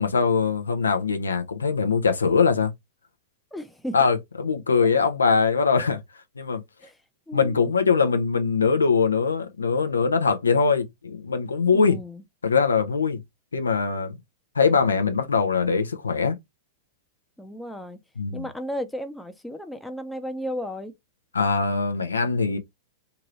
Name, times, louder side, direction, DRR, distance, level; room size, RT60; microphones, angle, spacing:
voice 1, 0.0-2.7 3.9-6.0 6.4-6.6 7.3-12.0 12.4-13.2 13.5-14.2 14.6-16.4 18.2-18.4 21.3-22.6, left 5 dB, 80° left, 0.6 m, -22 dB
voice 2, 3.5-4.0 6.8-7.0 7.3-7.6 11.7-12.2 17.4-18.0 18.3-20.9, equal, 5° left, 0.6 m, -34 dB
2.8 x 2.6 x 3.0 m
figure-of-eight pair, 100°, 0 cm